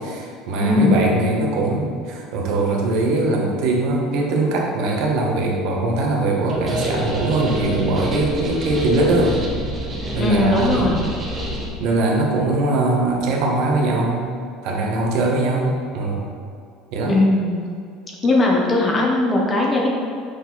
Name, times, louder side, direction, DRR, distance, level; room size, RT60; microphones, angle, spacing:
voice 1, 0.0-9.4 10.1-10.9 11.8-14.3 14.6-16.3 16.9-17.2, right 2 dB, 65° right, 0 dB, 1.2 m, -21 dB
voice 2, 0.6-1.1 10.2-11.1 17.1-17.7 18.2-19.9, left 2 dB, 25° left, -2 dB, 0.9 m, -18 dB
sound 1, 6.5-11.7, right 1 dB, 25° right, 1.3 m, -28 dB
6.5 x 5.0 x 4.0 m, 2.2 s
cardioid pair, 140°, 0 cm